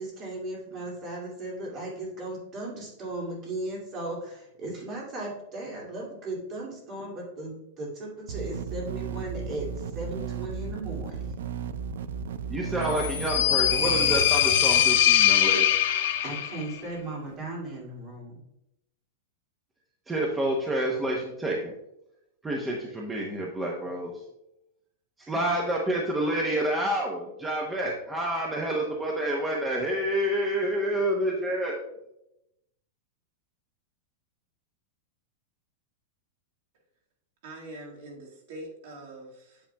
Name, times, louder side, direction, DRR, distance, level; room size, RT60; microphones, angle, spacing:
voice 1, 0.0-9.7 9.9-11.2 16.2-18.4, right 2 dB, 25° right, -2 dB, 2.3 m, -36 dB
sound 1, 8.3-14.2, right 7 dB, 80° right, 0.4 m, -35 dB
voice 2, 12.5-15.7 20.1-21.7 22.4-24.1 25.3-31.8, right 1 dB, 10° right, -1 dB, 0.8 m, -28 dB
sound 2, 12.9-16.6, left 11 dB, 60° left, 0.8 m, -22 dB
voice 3, 37.4-39.6, right 1 dB, 55° right, -1 dB, 1.8 m, -43 dB
8.7 x 8.5 x 2.2 m, 0.86 s
supercardioid pair, 175°, 0 cm